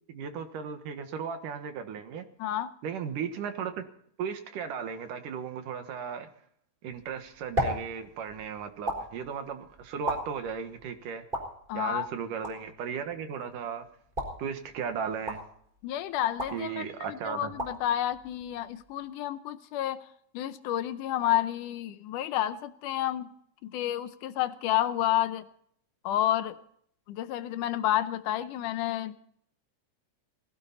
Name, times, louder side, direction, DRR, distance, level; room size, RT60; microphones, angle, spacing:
voice 1, 0.1-2.3 2.8-3.8 4.2-6.3 6.8-11.2 11.7-13.9 14.4-15.4 16.5-17.5, right 7 dB, 80° right, 7 dB, 3.0 m, -36 dB
voice 2, 2.4-2.7 11.7-12.1 15.8-20.0 20.3-23.3 23.6-25.5 26.0-26.6 27.1-29.2, left 12 dB, 75° left, 12 dB, 2.2 m, -30 dB
sound 1, 6.9-19.1, equal, 15° right, 4.3 m, -39 dB
19.5 x 16.5 x 4.2 m, 0.65 s
omnidirectional pair, 3.8 m